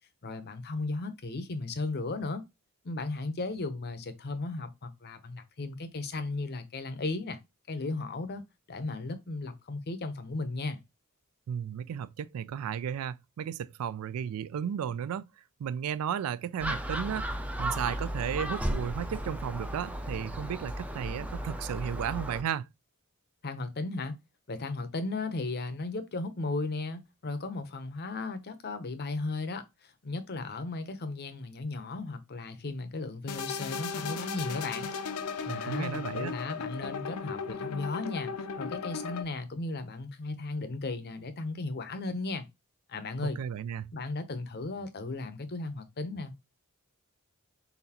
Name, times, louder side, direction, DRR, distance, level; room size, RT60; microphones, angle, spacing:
voice 1, 0.2-2.4 2.8-7.4 7.7-10.8 23.4-24.2 24.5-29.7 30.0-34.9 35.5-38.3 38.6-42.5 42.9-43.4 43.9-46.5, left 3 dB, 45° left, 0.7 m, -35 dB
voice 2, 11.5-15.3 15.6-17.3 17.6-22.7 35.5-36.3 43.2-43.9, right 8 dB, 75° right, 0.3 m, -34 dB
Gull seagull, 16.6-22.4, right 1 dB, 5° right, 0.5 m, -35 dB
sound 1, 33.3-39.2, left 5 dB, 85° left, 0.5 m, -36 dB
4.0 x 3.9 x 2.8 m
head